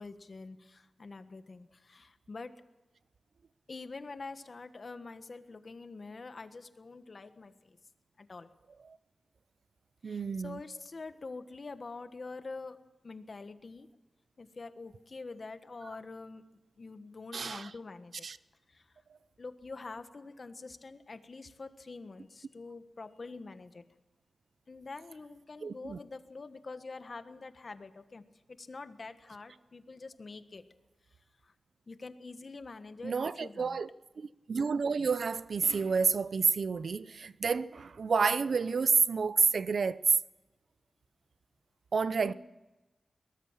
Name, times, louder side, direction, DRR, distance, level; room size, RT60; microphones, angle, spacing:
voice 1, 0.0-2.5 3.7-7.8 8.2-8.5 10.0-12.8 13.0-13.9 14.4-16.4 16.8-18.3 18.7-18.9 19.4-23.8 24.7-30.6 31.4-31.5 31.9-33.8 42.2-42.3, left 3 dB, 45° left, 1.4 m, -46 dB
voice 2, 10.0-10.6 17.3-17.7 18.2-18.4 25.6-26.0 33.0-33.9 34.2-40.0 41.9-42.3, right 5 dB, 65° right, 0.7 m, -29 dB
22.5 x 19.0 x 7.5 m
wide cardioid pair, 115°, 0 cm